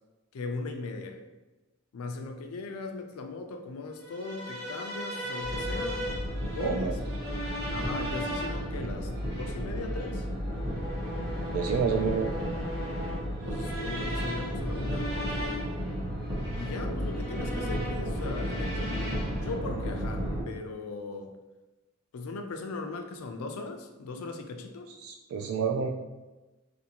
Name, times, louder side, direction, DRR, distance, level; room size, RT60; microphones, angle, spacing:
voice 1, 0.3-1.2 1.9-6.0 6.5-7.0 7.7-10.3 13.4-15.7 16.5-21.4 22.1-24.9, left 3 dB, 80° left, 5 dB, 0.4 m, -38 dB
sound 1, 4.0-19.5, equal, 50° right, 1.0 m, -38 dB
sound 2, 5.4-20.4, equal, 20° right, 0.7 m, -34 dB
voice 2, 6.6-6.9 7.8-7.9 11.5-12.3 25.0-25.9, right 5 dB, 80° right, 4 dB, 0.3 m, -29 dB
2.5 x 2.5 x 2.8 m, 1.1 s
head